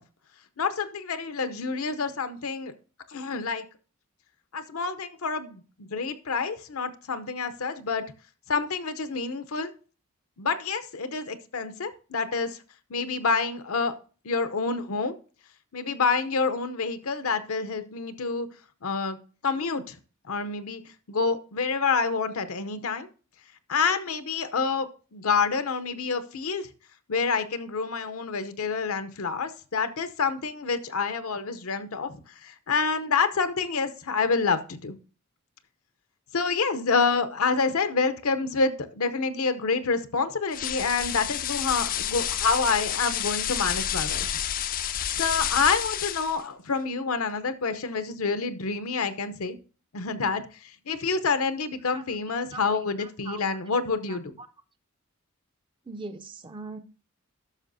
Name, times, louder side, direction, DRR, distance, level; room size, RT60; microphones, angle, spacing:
voice 1, 0.6-2.7 3.1-3.6 4.5-8.0 8.5-9.7 10.4-12.6 12.9-13.9 14.2-15.1 15.7-18.5 18.8-19.2 19.4-19.9 20.3-20.8 21.1-23.1 23.7-26.7 27.1-35.0 36.3-44.3 45.2-49.6 49.9-54.3, left 4 dB, 75° left, 11 dB, 0.7 m, -28 dB
sound 1, 40.5-46.4, left 10 dB, 40° left, 0.4 m, -30 dB
voice 2, 53.0-53.4 54.1-54.2 55.9-56.8, right 3 dB, 20° right, 8 dB, 0.4 m, -40 dB
12.5 x 6.0 x 2.6 m, 0.37 s
head